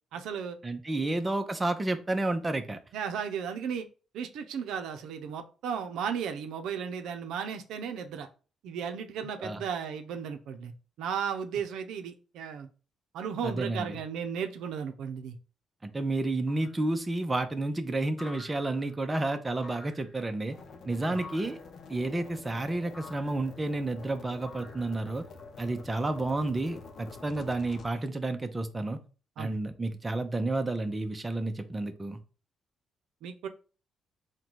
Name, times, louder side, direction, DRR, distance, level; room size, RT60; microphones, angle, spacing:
voice 1, 0.1-0.6 1.0-1.1 2.9-3.9 4.1-8.3 8.6-10.7 11.0-12.7 13.1-15.4 21.1-21.2 29.4-29.6 33.2-33.5, right 7 dB, 85° right, 0.5 m, -35 dB
voice 2, 0.6-2.8 9.4-9.6 13.4-13.9 15.8-20.6 20.9-21.6 21.9-25.2 25.6-29.0 29.4-32.2, right 2 dB, 20° right, 0.6 m, -31 dB
sound 1, 16.5-16.9 18.2-19.0 19.6-20.2 21.1-21.7 22.9-23.5 24.4-25.2, left 3 dB, 25° left, 1.1 m, -49 dB
sound 2, 20.5-27.9, left 4 dB, 60° left, 0.7 m, -48 dB
3.8 x 2.2 x 4.5 m
cardioid pair, 90°, 0 cm